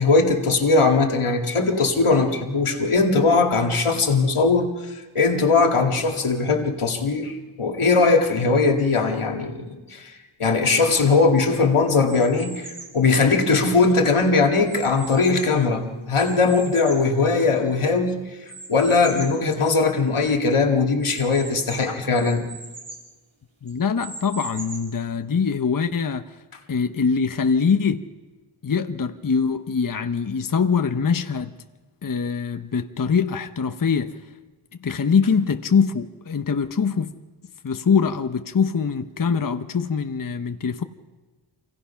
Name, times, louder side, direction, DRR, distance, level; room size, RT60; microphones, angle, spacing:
voice 1, 0.0-10.1 10.4-18.2 18.7-22.4, left 4 dB, 85° left, 2.2 m, -20 dB
sound 1, 12.1-13.0 13.6-15.7 16.1-17.8 18.5-19.4 19.9-20.0 20.2-20.3 21.0-23.1 23.7-25.0, right 3 dB, 65° right, 4.0 m, -40 dB
voice 2, 23.6-26.4 26.7-28.1 28.6-31.5 32.0-34.2 34.8-37.1 37.6-40.8, left 6 dB, 40° left, 0.8 m, -23 dB
27.0 x 17.0 x 5.7 m
wide cardioid pair, 75°, 49 cm